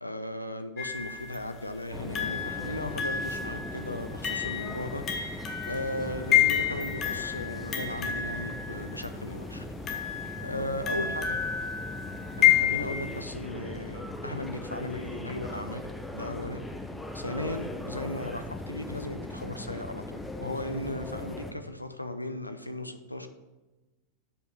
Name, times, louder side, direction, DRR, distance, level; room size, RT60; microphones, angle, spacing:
voice 1, 0.0-9.7 10.4-11.4 12.4-15.9 16.1-16.6 17.1-23.3, left 1 dB, 85° left, 8 dB, 0.6 m, -36 dB
sound 1, 0.8-1.4 2.1-9.1 9.8-13.2, left 9 dB, 25° left, 1.1 m, -29 dB
sound 2, 1.9-21.5, left 1 dB, 5° left, 0.7 m, -39 dB
6.8 x 5.3 x 6.2 m, 1.1 s
figure-of-eight pair, 90°, 0 cm